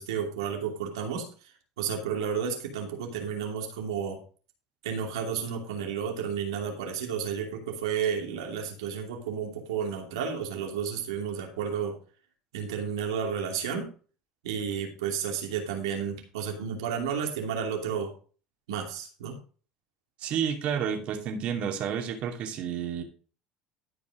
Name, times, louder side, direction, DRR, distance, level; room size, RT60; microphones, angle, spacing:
voice 1, 0.0-1.5 1.8-4.2 4.8-12.0 12.5-13.9 14.4-18.1 18.7-19.4, right 7 dB, 90° right, 3 dB, 2.6 m, -32 dB
voice 2, 20.2-23.0, right 8 dB, 55° right, 3 dB, 2.6 m, -30 dB
12.5 x 5.3 x 5.0 m, 0.39 s
supercardioid pair, 90°, 2 cm